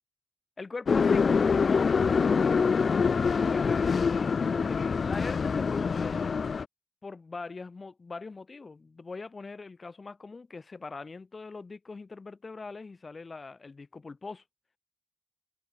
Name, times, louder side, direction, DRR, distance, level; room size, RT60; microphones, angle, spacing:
voice 1, 0.6-2.2 3.3-4.1 4.4-6.2 7.0-14.4, left 4 dB, 45° left, 0.7 m, -41 dB
sound 1, 0.9-6.6, left 5 dB, 60° left, 0.3 m, -25 dB
cardioid pair, 60°, 0 cm